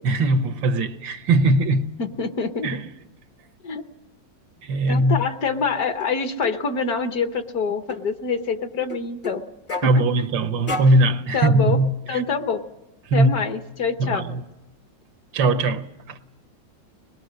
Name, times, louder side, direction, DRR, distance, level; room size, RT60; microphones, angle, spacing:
voice 1, 0.0-1.9 2.6-2.8 4.6-5.2 9.8-12.2 13.1-13.4 14.0-14.4 15.3-16.2, right 2 dB, 85° right, 1.7 m, -20 dB
voice 2, 2.0-2.8 3.6-3.8 4.9-9.4 9.8-10.0 11.3-11.8 12.1-12.6 13.1-14.2, left 4 dB, 60° left, 1.4 m, -26 dB
sound 1, 6.0-6.1 6.4-6.6 7.9-8.0 8.8-9.4 9.7-9.9 10.7-11.0, left 2 dB, 25° left, 0.7 m, -30 dB
25.0 x 21.0 x 6.3 m
omnidirectional pair, 2.0 m